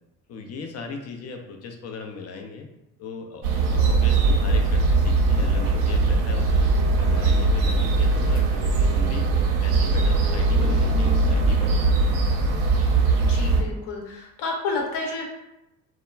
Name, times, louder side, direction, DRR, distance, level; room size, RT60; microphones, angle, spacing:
voice 1, 0.3-2.7 3.0-3.4 3.7-6.7 7.0-9.3 9.6-11.9, left 4 dB, 35° left, 4 dB, 0.4 m, -37 dB
sound 1, 3.4-13.6, right 3 dB, 60° right, 0.6 m, -20 dB
voice 2, 13.3-15.2, left 3 dB, 55° left, 0 dB, 0.9 m, -30 dB
2.2 x 2.0 x 3.2 m, 0.87 s
hypercardioid pair, 60°, 50 cm